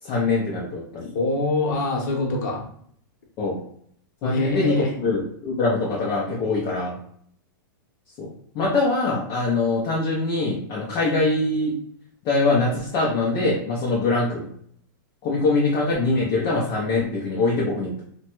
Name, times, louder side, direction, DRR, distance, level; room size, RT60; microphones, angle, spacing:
voice 1, 0.0-1.1 3.4-3.6 4.2-7.0 8.2-8.3 8.5-11.7 12.2-14.5 15.2-18.0, left 3 dB, 30° left, -5 dB, 0.5 m, -23 dB
voice 2, 1.1-2.6 4.2-4.9, left 2 dB, 55° left, -1 dB, 0.9 m, -25 dB
2.9 x 2.2 x 2.9 m, 0.64 s
supercardioid pair, 160°, 11 cm